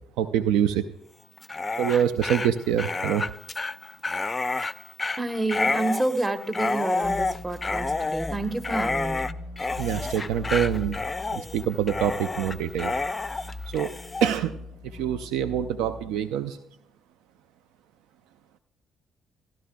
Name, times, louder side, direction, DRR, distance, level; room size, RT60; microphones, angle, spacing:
voice 1, 0.2-0.8 1.8-3.2 9.8-11.0 11.3-12.9 13.7-16.6, right 9 dB, 70° right, 12 dB, 0.3 m, -26 dB
Dog, 1.4-14.4, left 3 dB, 25° left, 0.4 m, -29 dB
voice 2, 5.2-9.3, right 2 dB, 20° right, 7 dB, 1.2 m, -29 dB
sound 1, 7.0-16.1, left 3 dB, 45° right, 3.3 m, -40 dB
15.5 x 11.5 x 2.3 m, 0.81 s
hypercardioid pair, 50°, 0 cm